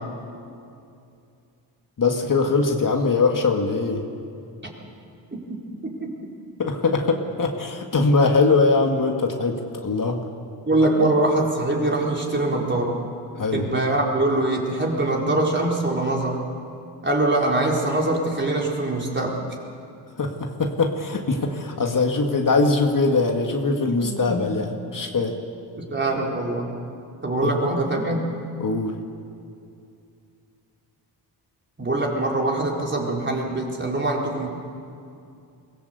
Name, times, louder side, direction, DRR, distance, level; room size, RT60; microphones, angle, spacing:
voice 1, 2.0-4.0 6.6-10.2 11.0-11.1 13.4-13.7 20.2-25.3 27.4-27.6 28.6-29.0, left 3 dB, 45° left, 3 dB, 2.0 m, -22 dB
voice 2, 5.3-6.1 10.7-13.0 13.5-16.4 17.0-19.4 23.9-24.4 25.8-26.7 27.2-28.3 31.8-34.5, right 2 dB, 25° right, -2 dB, 4.4 m, -23 dB
22.5 x 16.5 x 8.2 m, 2.6 s
cardioid pair, 75°, 43 cm